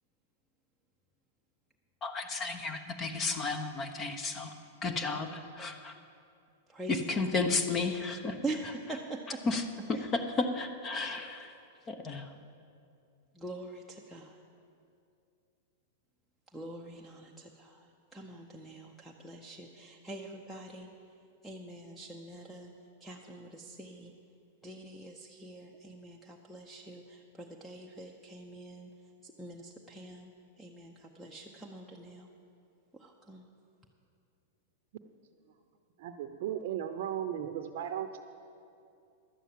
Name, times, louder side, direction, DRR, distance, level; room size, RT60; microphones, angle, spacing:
voice 1, 2.0-4.5 4.8-5.9 6.9-8.4 9.4-9.6 9.9-11.5 11.9-12.3, left 3 dB, 25° left, 8 dB, 1.0 m, -33 dB
voice 2, 6.7-7.3 8.4-9.4 13.3-14.4 16.5-20.9 21.4-22.7 23.0-24.1 24.6-28.9 29.2-32.3 32.9-33.4, right 2 dB, ahead, 1 dB, 0.8 m, -44 dB
voice 3, 36.0-38.2, right 10 dB, 60° right, 6 dB, 0.7 m, -36 dB
11.5 x 8.2 x 7.5 m, 2.5 s
hypercardioid pair, 125°, 0 cm